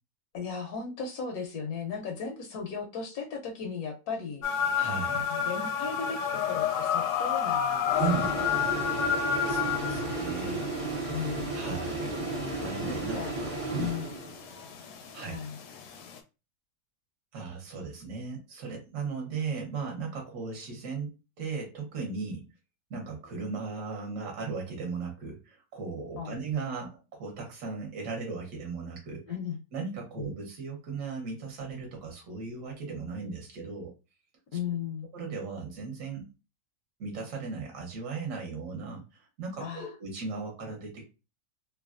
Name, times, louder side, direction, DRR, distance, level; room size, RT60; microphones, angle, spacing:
voice 1, 0.3-4.4 5.3-8.0 8.4-8.6 9.8-10.2 11.1-11.6 12.8-13.4 13.7-14.1 15.3-15.6 26.2-26.4 29.3-29.6 30.2-30.3 34.5-35.1 39.6-39.9, left 6 dB, 85° left, 1.2 m, -36 dB
sound 1, 4.4-16.2, left 8 dB, 70° left, 0.8 m, -31 dB
voice 2, 4.7-5.3 8.0-8.3 9.5-10.7 11.5-12.3 12.6-13.9 15.1-15.4 17.3-21.1 21.4-22.5 22.9-29.2 29.7-33.9 35.1-36.2 37.0-41.1, right 5 dB, 60° right, 1.2 m, -36 dB
sound 2, 7.9-14.6, right 2 dB, 40° right, 0.5 m, -34 dB
3.1 x 2.2 x 2.4 m
omnidirectional pair, 1.6 m